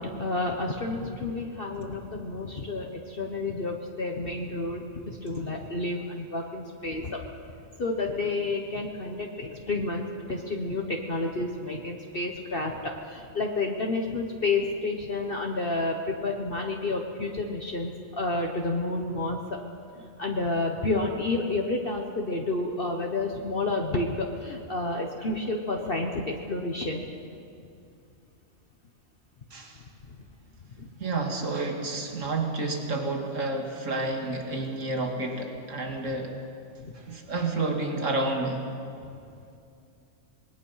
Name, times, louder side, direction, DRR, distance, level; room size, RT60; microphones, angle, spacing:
voice 1, 0.0-7.2 7.8-19.4 20.2-27.1, left 2 dB, 45° left, 1 dB, 1.4 m, -30 dB
voice 2, 31.0-36.4 37.1-38.7, right 2 dB, 65° right, 2 dB, 2.5 m, -30 dB
27.0 x 20.5 x 5.7 m, 2.5 s
omnidirectional pair, 1.4 m